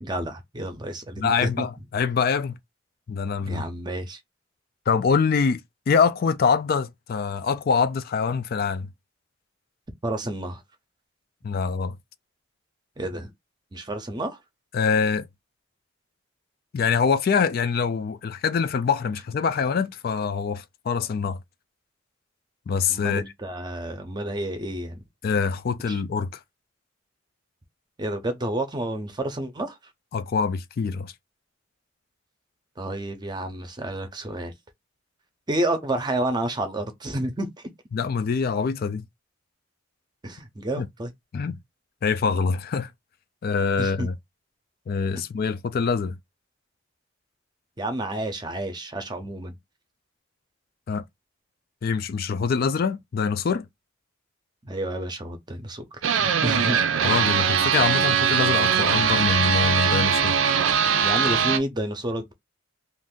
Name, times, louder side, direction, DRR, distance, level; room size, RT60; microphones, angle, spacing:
voice 1, 0.0-1.7 3.5-4.2 10.0-10.6 13.0-13.3 13.7-14.4 22.9-25.0 25.9-26.0 28.0-29.8 32.8-34.5 35.5-37.7 40.2-41.1 43.8-44.1 47.8-49.6 54.6-55.8 56.1-56.8 61.0-62.3, right 1 dB, 20° right, 0.6 m, -30 dB
voice 2, 1.2-2.6 3.1-3.6 4.9-5.6 5.9-8.9 11.4-12.0 14.7-15.3 16.7-21.4 22.7-23.2 25.2-26.4 30.1-31.1 37.9-39.0 40.8-40.9 41.3-41.6 42.0-42.9 43.4-44.2 44.9-46.1 50.9-51.0 51.8-53.7 57.0-60.4, left 5 dB, 50° left, 0.3 m, -24 dB
sound 1, 56.0-61.6, right 7 dB, 85° right, 0.5 m, -21 dB
2.5 x 2.5 x 3.6 m
head